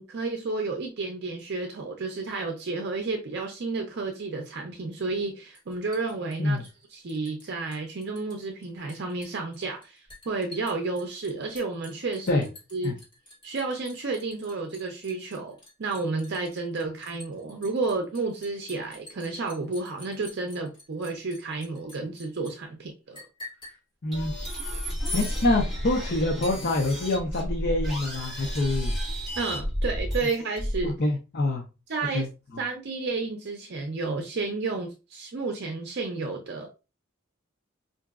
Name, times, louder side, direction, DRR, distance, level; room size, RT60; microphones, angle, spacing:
voice 1, 0.0-12.4 12.7-13.0 13.4-23.2 29.4-31.0 31.9-32.3 32.6-36.7, right 3 dB, 55° right, 0.5 m, -31 dB
Liquid, 5.6-7.5 7.7-8.4 8.6-22.5 23.1-23.8 25.0-25.4, left 1 dB, 25° left, 1.6 m, -44 dB
voice 2, 24.0-24.3 25.1-29.0 30.8-31.6 32.1-32.3, left 2 dB, 50° left, 0.6 m, -26 dB
sound 1, 24.1-30.9, equal, ahead, 1.3 m, -31 dB
4.7 x 2.6 x 2.3 m
head